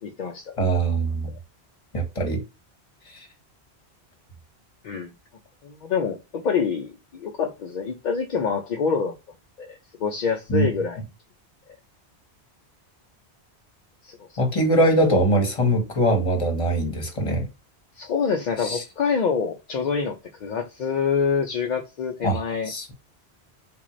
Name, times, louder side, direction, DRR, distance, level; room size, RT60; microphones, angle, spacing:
voice 1, 0.0-0.6 4.8-5.1 5.6-9.1 9.6-11.0 14.0-14.4 18.0-22.7, left 6 dB, 55° left, 0.5 m, -26 dB
voice 2, 0.6-1.3 1.9-2.4 3.1-3.3 10.5-10.7 14.4-17.5 18.6-18.8 22.2-22.4 22.7-22.9, right 1 dB, 30° left, 1.0 m, -22 dB
3.7 x 2.5 x 3.0 m
omnidirectional pair, 1.1 m